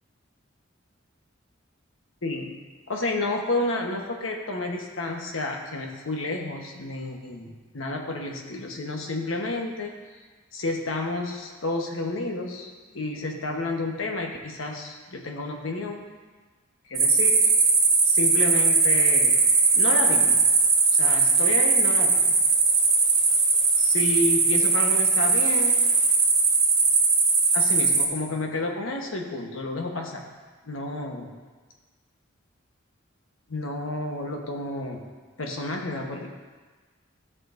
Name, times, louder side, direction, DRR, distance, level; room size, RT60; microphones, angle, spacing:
voice 1, 2.2-2.5 2.9-9.9 10.5-16.1 16.9-17.5 18.1-19.4 19.7-20.4 20.9-22.4 23.8-25.8 27.5-30.2 30.6-31.3 33.5-35.1 35.4-36.3, left 2 dB, 85° left, 2 dB, 1.1 m, -30 dB
sound 1, 16.9-28.0, right 4 dB, 35° right, 2.1 m, -20 dB
14.0 x 6.2 x 2.6 m, 1.4 s
head